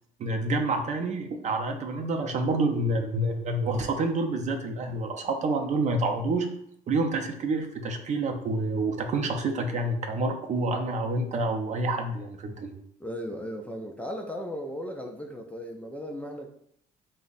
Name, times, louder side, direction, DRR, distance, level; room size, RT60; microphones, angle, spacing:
voice 1, 0.2-6.5 6.9-12.7, right 2 dB, 45° right, 4 dB, 0.5 m, -28 dB
voice 2, 13.0-16.5, equal, 10° left, 2 dB, 0.3 m, -36 dB
3.4 x 2.1 x 3.9 m, 0.69 s
cardioid pair, 110°, 17 cm